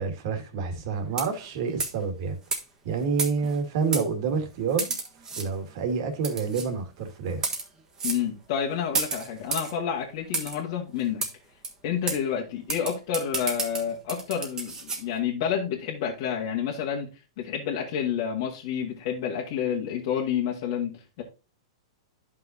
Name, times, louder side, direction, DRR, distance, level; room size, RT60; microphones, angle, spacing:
voice 1, 0.0-2.4 2.8-4.9 5.4-7.4, right 5 dB, 55° right, 2.1 m, -28 dB
sound 1, 1.1-1.5 1.8-2.0 2.5-2.6 3.2-3.6 3.9-4.1 4.8-5.5 6.2-6.7 7.3-7.7 8.0-8.2 8.9-9.7 10.3-10.6 11.2-11.3 11.6-11.7 12.1-12.2 12.7-15.0, right 4 dB, 20° right, 1.4 m, -30 dB
voice 2, 8.0-11.2 11.8-17.1 17.4-21.2, left 8 dB, 55° left, 1.6 m, -29 dB
11.0 x 5.7 x 2.7 m
hypercardioid pair, 130°, 3 cm